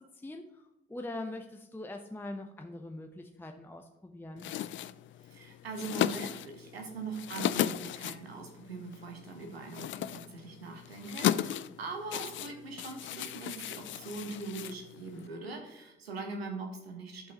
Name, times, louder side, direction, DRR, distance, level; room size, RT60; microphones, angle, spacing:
voice 1, 0.2-0.6 0.9-4.5, left 2 dB, 5° left, 4 dB, 0.7 m, -42 dB
sound 1, 4.4-15.3, left 12 dB, 40° left, 0.4 m, -36 dB
voice 2, 5.2-17.3, right 3 dB, 85° right, 3 dB, 1.1 m, -41 dB
11.5 x 5.4 x 3.0 m, 0.98 s
figure-of-eight pair, 45°, 30 cm